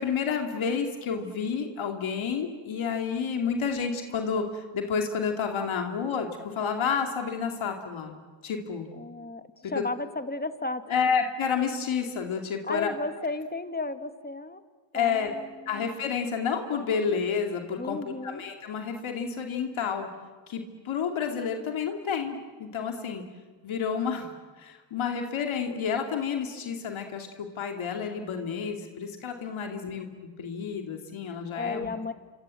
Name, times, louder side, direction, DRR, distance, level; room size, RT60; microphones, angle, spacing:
voice 1, 0.0-8.1 8.4-8.9 9.6-9.8 10.9-12.9 14.9-15.3 15.7-20.1 20.5-23.2 23.6-31.9, left 6 dB, 90° left, 3 dB, 2.7 m, -30 dB
voice 2, 9.0-10.9 12.6-14.6 14.9-15.9 17.8-18.4 29.6-29.9 31.5-32.1, left 2 dB, 20° left, 9 dB, 1.8 m, -34 dB
27.0 x 26.0 x 7.7 m, 1.4 s
cardioid pair, 65°, 46 cm